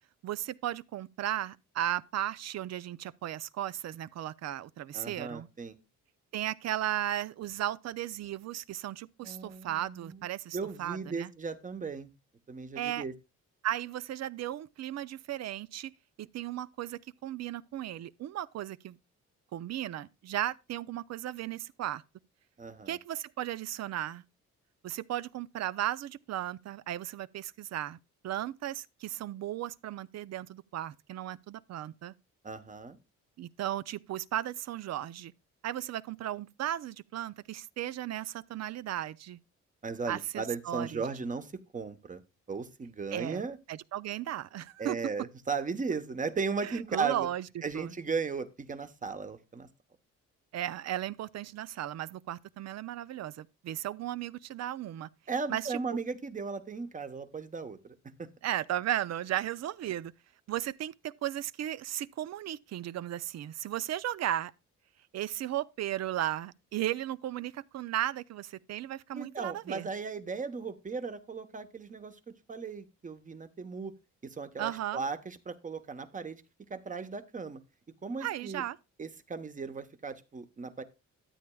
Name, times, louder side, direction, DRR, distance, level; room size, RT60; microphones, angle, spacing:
voice 1, 0.2-5.5 6.3-11.3 12.8-13.0 13.6-15.9 16.2-19.0 19.5-22.0 22.9-24.2 24.8-28.0 28.2-32.1 33.4-35.3 35.6-39.4 40.1-41.0 43.1-45.0 46.6-47.4 47.7-47.9 50.5-55.1 55.5-55.8 58.4-60.1 60.5-64.5 65.1-69.9 74.6-75.0 78.2-78.8, right 12 dB, 60° right, 0.5 m, -35 dB
voice 2, 4.9-5.8 9.2-10.3 10.5-12.1 12.5-13.1 22.6-23.0 32.4-33.0 39.8-42.2 42.5-43.6 44.8-47.3 47.6-49.7 55.3-58.3 69.1-72.2 72.5-73.9 74.2-76.4 76.7-77.6 78.0-78.6 79.0-80.8, right 5 dB, 25° right, 1.0 m, -36 dB
13.0 x 8.7 x 2.3 m
cardioid pair, 90°, 30 cm